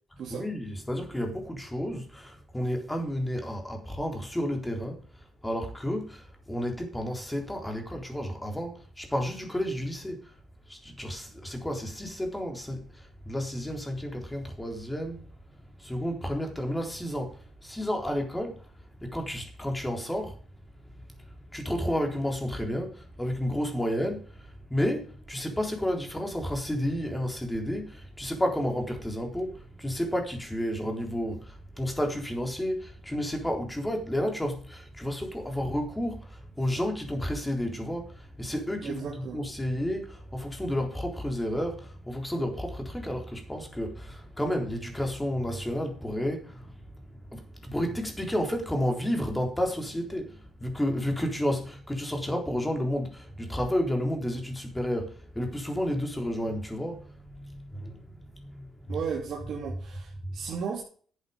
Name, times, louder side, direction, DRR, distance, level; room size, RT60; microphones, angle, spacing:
voice 1, 0.3-5.0 5.4-10.3 10.7-15.3 15.8-18.6 19.0-20.4 21.5-59.0 59.4-59.8 60.2-60.4, equal, 10° left, 3.9 m, -31 dB
voice 2, 38.8-39.4 58.9-60.1 60.3-60.8, right 6 dB, 70° right, 2.9 m, -34 dB
11.5 x 8.0 x 5.4 m
cardioid pair, 90°, 0 cm